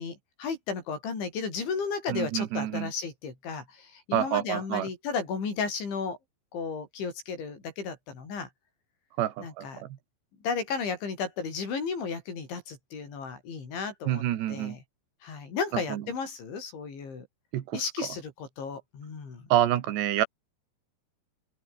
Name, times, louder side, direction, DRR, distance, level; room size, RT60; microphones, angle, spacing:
voice 1, 0.0-6.2 6.5-8.5 9.4-9.8 10.4-14.2 14.5-14.8 15.2-17.3 17.7-19.5, left 5 dB, 85° left, 9.2 m, -34 dB
voice 2, 2.1-2.9 4.1-4.9 9.2-10.0 14.1-14.8 15.7-16.0 17.5-17.8 19.5-20.3, right 12 dB, 75° right, 3.6 m, -28 dB
open air
omnidirectional pair, 5.2 m